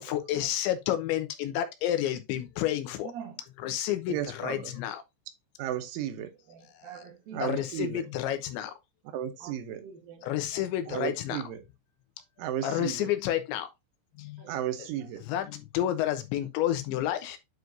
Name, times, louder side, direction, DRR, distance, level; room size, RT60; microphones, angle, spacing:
voice 1, 0.0-3.1 3.6-5.0 7.4-8.7 10.2-11.4 12.6-13.7 14.2-14.4 15.3-17.4, left 12 dB, 80° left, 3.2 m, -30 dB
voice 2, 3.0-3.4 4.1-4.3 6.3-8.1 9.4-9.5 9.8-10.7 12.4-12.9 14.4-14.6 15.0-15.1, right 8 dB, 65° right, 2.6 m, -47 dB
voice 3, 4.1-4.7 5.6-6.3 7.3-8.1 9.1-9.8 10.9-11.6 12.4-13.1 14.5-15.2, right 11 dB, 90° right, 3.4 m, -34 dB
9.3 x 4.9 x 2.6 m
omnidirectional pair, 5.3 m